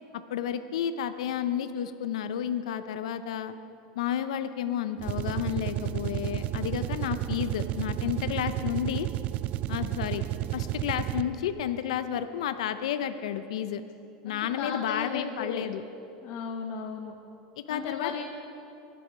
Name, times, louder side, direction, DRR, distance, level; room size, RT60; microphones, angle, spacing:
voice 1, 0.3-3.5 4.0-9.1 9.7-10.2 10.5-13.8 14.2-15.8 17.6-18.2, left 9 dB, 85° left, 10 dB, 0.6 m, -31 dB
sound 1, 5.0-11.5, right 14 dB, 45° right, 0.4 m, -32 dB
voice 2, 14.3-15.7 16.2-17.1 17.7-18.2, left 6 dB, 55° left, 0 dB, 1.2 m, -35 dB
22.5 x 7.6 x 5.1 m, 2.7 s
supercardioid pair, 120°, 3 cm